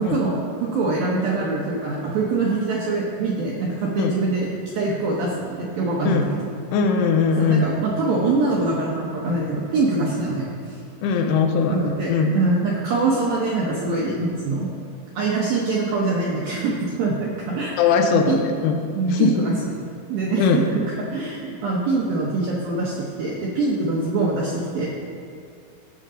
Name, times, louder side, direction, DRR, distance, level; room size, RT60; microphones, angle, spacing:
voice 1, 0.0-6.3 7.4-10.5 11.7-14.7 15.2-17.7 18.3-18.4 19.0-19.5 20.1-20.8 21.1-24.9, right 3 dB, 80° right, -4 dB, 2.1 m, -24 dB
voice 2, 6.7-7.6 11.0-12.4 17.8-18.8 19.1-19.4 20.4-20.7, left 5 dB, 90° left, 4 dB, 3.3 m, -20 dB
17.0 x 6.7 x 3.8 m, 2.4 s
omnidirectional pair, 5.7 m